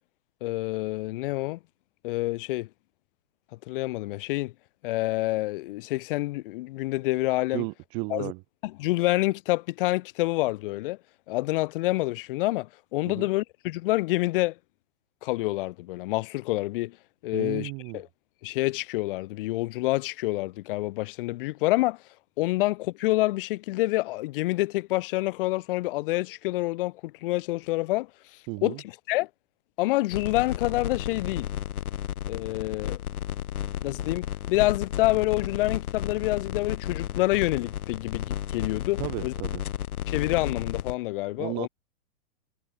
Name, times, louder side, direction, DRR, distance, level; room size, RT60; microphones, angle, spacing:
voice 1, 0.4-1.6 2.0-2.7 3.7-4.5 4.8-7.6 8.1-8.3 8.6-11.0 11.3-14.6 15.2-17.0 17.2-18.1 18.4-22.0 22.4-28.1 28.6-28.8 29.1-29.3 29.8-31.5 32.3-33.0 33.8-39.3 40.1-41.7, left 19 dB, 40° left, 5.1 m, -27 dB
voice 2, 7.5-8.4 13.1-13.3 17.3-18.0 28.5-28.8 39.0-39.6 41.4-41.7, right 36 dB, 15° right, 0.6 m, -34 dB
sound 1, 30.1-41.0, left 10 dB, 90° left, 2.2 m, -33 dB
hypercardioid pair, 170°, 43 cm